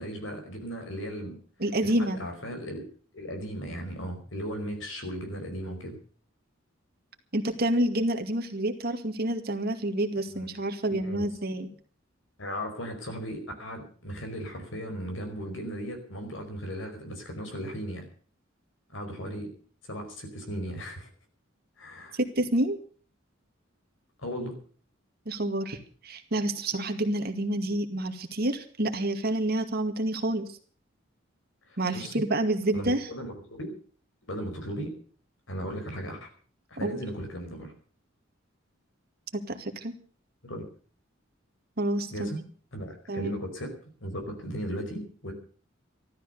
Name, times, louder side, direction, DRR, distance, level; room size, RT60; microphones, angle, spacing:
voice 1, 0.0-1.4 1.8-2.8 3.1-6.0 10.3-10.5 10.9-11.2 12.4-18.1 18.9-19.5 19.9-21.1 21.8-22.2 24.2-24.5 31.7-32.1 32.7-33.7 34.3-34.9 35.5-36.3 36.7-37.7 40.4-40.6 42.1-42.4 42.7-43.7 44.0-45.3, equal, 70° left, 5 dB, 5.0 m, -36 dB
voice 2, 1.6-2.2 7.3-11.7 22.1-22.8 25.3-25.8 26.0-30.4 31.8-33.1 36.8-37.0 39.5-39.9 41.8-42.3 43.1-43.3, right 1 dB, 50° right, 6 dB, 2.2 m, -28 dB
14.0 x 13.0 x 6.8 m, 0.44 s
head